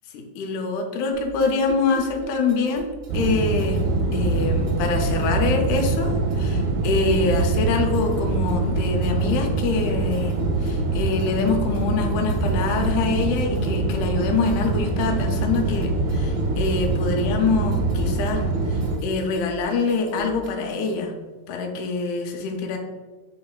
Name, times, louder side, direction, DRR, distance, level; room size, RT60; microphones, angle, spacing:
voice 1, 0.1-2.9 3.1-3.8 4.1-18.4 18.7-21.1 21.5-22.8, left 4 dB, 80° left, 2 dB, 1.7 m, -25 dB
sound 1, 1.1-20.7, right 1 dB, 65° right, 1.9 m, -38 dB
sound 2, 3.1-19.0, right 3 dB, 85° right, 2.4 m, -24 dB
5.3 x 4.0 x 2.3 m, 1.4 s
omnidirectional pair, 4.1 m